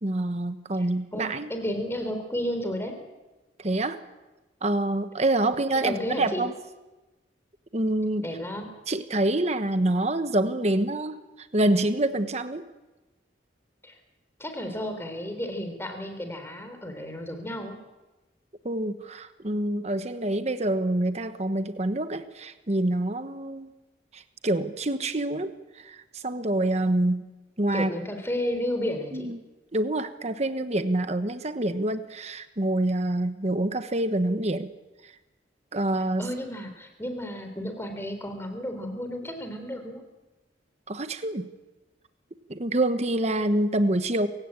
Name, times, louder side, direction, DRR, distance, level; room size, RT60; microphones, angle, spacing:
voice 1, 0.0-1.5 3.6-4.0 4.6-6.5 7.7-8.3 8.9-12.6 18.6-23.7 24.1-27.2 27.6-27.9 29.1-29.4 29.7-34.7 35.7-36.3 40.9-41.5 42.5-44.3, right 1 dB, 35° right, 10 dB, 1.2 m, -26 dB
voice 2, 1.1-2.9 5.8-6.4 8.2-8.7 13.8-14.0 14.4-17.8 27.7-29.3 36.2-40.0, equal, 15° left, 6 dB, 3.7 m, -32 dB
27.5 x 17.0 x 8.8 m, 1.1 s
head